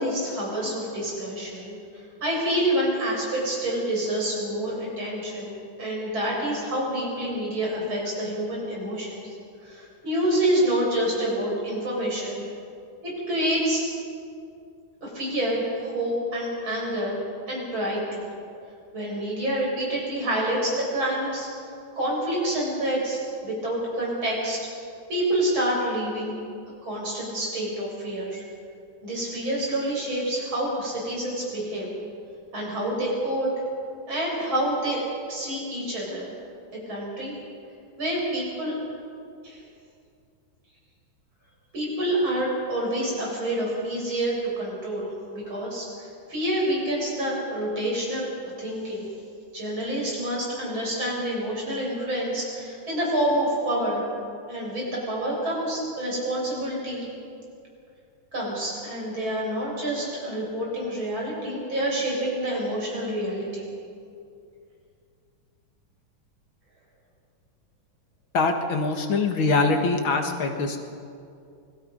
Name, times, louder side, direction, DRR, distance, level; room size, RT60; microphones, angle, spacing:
voice 1, 0.0-9.3 9.6-12.4 13.0-13.8 15.0-17.2 17.5-18.3 18.9-24.6 25.1-26.3 26.8-28.4 29.0-31.9 32.5-33.5 34.1-35.0 35.3-36.3 36.9-37.4 38.0-38.8 39.4-39.6 41.7-49.1 49.5-54.0 54.5-57.1 58.3-63.7, right 1 dB, 70° right, -4 dB, 7.6 m, -27 dB
voice 2, 68.3-70.8, left 3 dB, 70° left, 4 dB, 2.5 m, -23 dB
28.0 x 21.0 x 5.3 m, 2.4 s
omnidirectional pair, 2.3 m